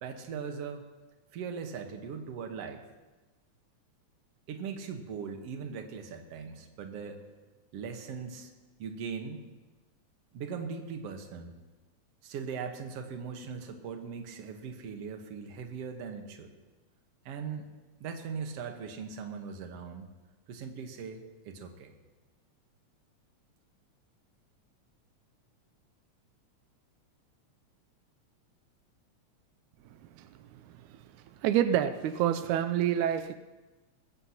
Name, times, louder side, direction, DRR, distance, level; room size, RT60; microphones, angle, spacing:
voice 1, 0.0-0.8 1.3-2.8 4.5-7.2 7.7-8.5 8.8-9.5 10.3-11.5 12.2-16.5 17.3-17.6 18.0-20.1 20.5-21.9, right 6 dB, 60° right, 4 dB, 2.1 m, -39 dB
voice 2, 30.2-31.0 31.4-33.3, right 10 dB, 85° right, 10 dB, 2.0 m, -28 dB
20.5 x 15.5 x 2.9 m, 1.2 s
omnidirectional pair, 3.4 m